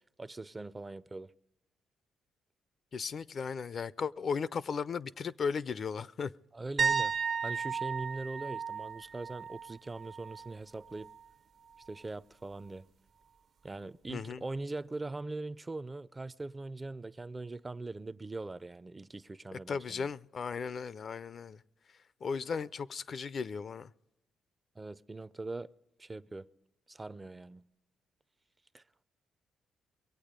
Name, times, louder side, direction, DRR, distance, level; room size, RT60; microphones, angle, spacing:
voice 1, 0.2-1.3 6.5-7.1 7.4-11.1 11.9-12.9 13.6-20.1 24.8-25.7 26.0-26.5 26.9-27.7 28.7-28.8, right 2 dB, 20° right, 0.4 m, -41 dB
voice 2, 2.9-6.3 14.1-14.4 19.7-21.6 22.2-23.9, left 5 dB, 50° left, 0.4 m, -36 dB
sound 1, 6.8-10.5 10.9-11.2 14.1-14.2, right 6 dB, 60° right, 0.6 m, -34 dB
23.0 x 8.6 x 5.1 m
cardioid pair, 90°, 0 cm